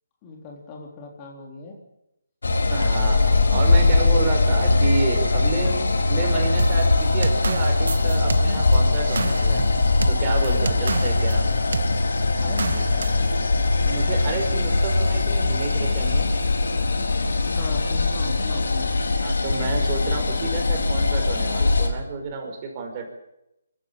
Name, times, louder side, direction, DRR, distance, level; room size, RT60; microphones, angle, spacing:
voice 1, 0.2-1.8 3.6-3.7 10.5-10.6 12.4-13.5 14.3-14.6 17.4-19.1, left 3 dB, 20° left, 1 dB, 4.0 m, -40 dB
sound 1, 2.4-21.9, left 3 dB, 80° left, 4.2 m, -21 dB
voice 2, 2.7-9.6 10.1-11.5 13.8-16.3 19.2-23.1, right 4 dB, 25° right, 2 dB, 5.3 m, -30 dB
sound 2, 6.6-11.4 11.7-11.9 12.6-13.3, right 4 dB, 65° right, 1.5 m, -29 dB
25.0 x 14.5 x 9.0 m, 0.85 s
hypercardioid pair, 160°, 0 cm